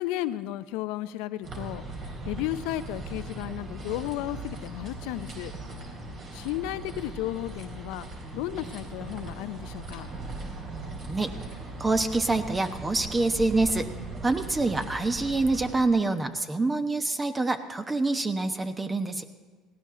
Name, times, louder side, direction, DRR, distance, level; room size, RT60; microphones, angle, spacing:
voice 1, 0.0-1.9 2.3-5.5 6.3-8.1 8.3-10.1, left 15 dB, 80° left, 13 dB, 0.6 m, -33 dB
sound 1, 1.4-15.7, right 2 dB, 50° right, 4.0 m, -39 dB
voice 2, 11.8-13.9 14.2-19.2, right 3 dB, 20° right, 8 dB, 0.9 m, -26 dB
18.5 x 16.5 x 3.8 m, 1.3 s
supercardioid pair, 85°, 0 cm